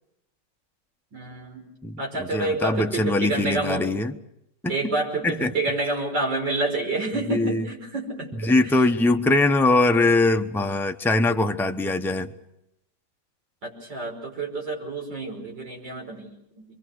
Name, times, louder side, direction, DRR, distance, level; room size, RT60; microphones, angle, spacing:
voice 1, 1.1-1.7 2.0-3.9 4.7-8.8 13.6-16.7, right 2 dB, 85° right, 0 dB, 6.2 m, -28 dB
voice 2, 1.8-4.2 4.6-5.0 5.2-5.5 7.3-7.7 8.4-12.3, left 2 dB, 5° left, 6 dB, 0.4 m, -22 dB
27.5 x 22.5 x 6.4 m, 0.82 s
omnidirectional pair, 1.9 m